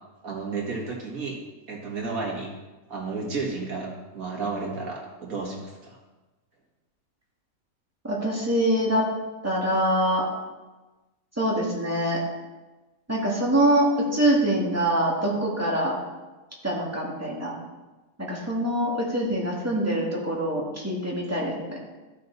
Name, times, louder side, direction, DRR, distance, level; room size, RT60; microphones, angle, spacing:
voice 1, 0.2-1.4 1.7-2.5 2.9-6.0, right 4 dB, 75° right, -1 dB, 2.2 m, -32 dB
voice 2, 8.0-9.0 9.4-10.2 11.4-12.2 13.1-16.0 16.6-17.5 18.3-21.8, right 1 dB, 10° right, -4 dB, 2.1 m, -24 dB
12.5 x 6.5 x 4.1 m, 1.2 s
omnidirectional pair, 1.5 m